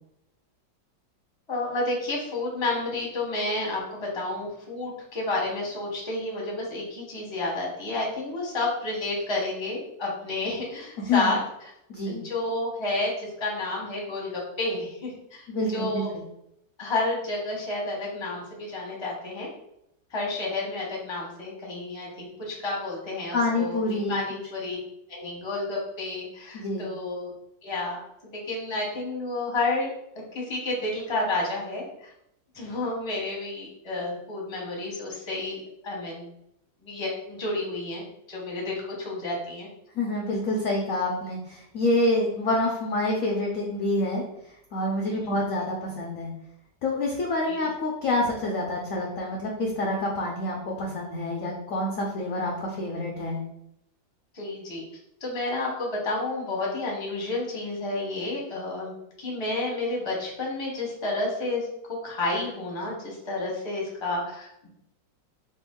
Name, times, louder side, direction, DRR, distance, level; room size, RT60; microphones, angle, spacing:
voice 1, 1.5-11.4 12.0-16.1 16.8-19.5 20.1-24.8 25.1-27.3 27.6-28.0 28.5-29.9 30.3-32.1 32.5-36.3 36.8-38.0 38.3-39.7 45.1-45.4 47.5-47.7 54.3-54.8 55.2-61.7 62.0-64.7, left 2 dB, 20° left, -3 dB, 0.9 m, -30 dB
voice 2, 11.0-11.4 11.9-12.2 15.5-16.2 23.3-24.2 26.5-26.9 39.9-44.2 44.7-46.3 46.8-53.4, left 2 dB, 65° left, -1 dB, 0.9 m, -27 dB
4.2 x 2.9 x 3.7 m, 0.80 s
omnidirectional pair, 2.0 m